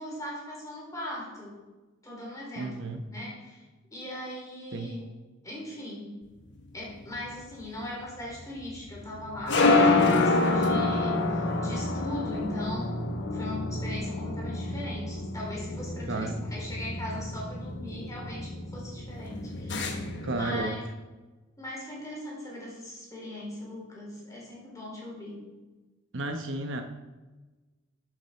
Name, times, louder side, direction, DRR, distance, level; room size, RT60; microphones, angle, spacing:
voice 1, 0.0-1.6 2.0-3.6 3.9-5.1 5.4-6.3 6.7-20.0 20.3-20.8 21.6-25.5, left 1 dB, 15° left, -4 dB, 3.9 m, -39 dB
voice 2, 2.6-3.0 4.7-4.9 16.1-16.4 20.2-20.8 26.1-26.8, right 2 dB, 65° right, 5 dB, 1.0 m, -32 dB
sound 1, 6.5-20.5, left 2 dB, 60° left, 1.2 m, -28 dB
12.0 x 7.3 x 4.4 m, 1.2 s
head